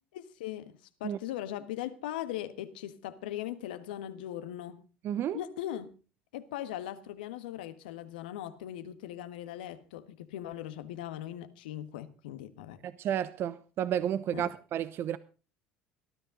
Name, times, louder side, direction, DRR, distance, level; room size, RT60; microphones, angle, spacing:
voice 1, 0.1-4.8 5.3-5.9 6.3-12.8 14.3-14.5, left 12 dB, 80° left, 1.5 m, -39 dB
voice 2, 5.0-5.4 13.0-15.2, right 10 dB, 50° right, 0.8 m, -31 dB
18.5 x 13.0 x 3.7 m
hypercardioid pair, 65°, 5 cm